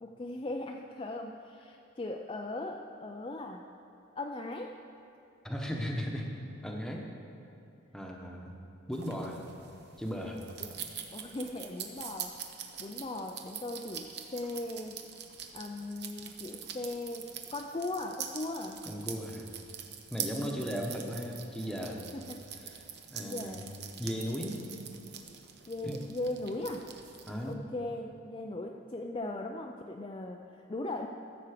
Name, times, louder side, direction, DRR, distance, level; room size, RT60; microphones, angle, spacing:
voice 1, 0.0-3.6 4.2-4.8 10.6-10.7 11.1-15.0 15.5-18.9 20.4-20.7 22.1-22.4 23.2-23.7 25.7-26.9 27.4-31.1, left 2 dB, 25° left, 2 dB, 0.4 m, -39 dB
voice 2, 5.4-6.3 6.6-7.1 7.9-8.5 8.9-9.4 10.0-10.4 18.9-19.5 20.1-22.1 23.1-23.6 24.0-24.6 25.8-26.0 27.3-27.6, equal, 5° left, 0 dB, 1.0 m, -36 dB
sound 1, 8.9-27.5, right 8 dB, 55° right, 0.8 m, -44 dB
14.5 x 7.1 x 5.0 m, 2.9 s
head